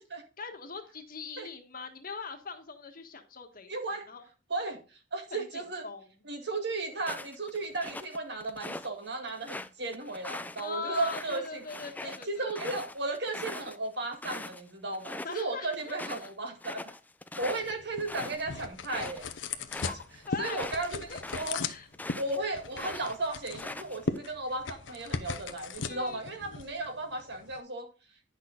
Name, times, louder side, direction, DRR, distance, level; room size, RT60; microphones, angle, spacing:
voice 1, 0.4-4.2 5.3-6.2 10.5-12.6 15.2-16.1 19.8-20.0 20.3-20.8 21.1-21.2 21.7-21.9 25.8-26.8, left 4 dB, 50° left, 6 dB, 1.4 m, -41 dB
voice 2, 3.7-4.0 4.5-4.8 5.1-5.9 6.3-11.6 12.0-16.9 17.4-19.3 20.4-21.1 21.3-21.6 22.2-27.9, right 2 dB, 65° right, 4 dB, 2.0 m, -35 dB
sound 1, 7.0-8.9 9.3-14.6 14.9-15.4 15.7-22.4 22.7-24.2, left 2 dB, 10° left, 0.4 m, -42 dB
sound 2, 17.4-27.6, left 4 dB, 80° left, 0.8 m, -39 dB
10.0 x 6.1 x 3.8 m, 0.33 s
head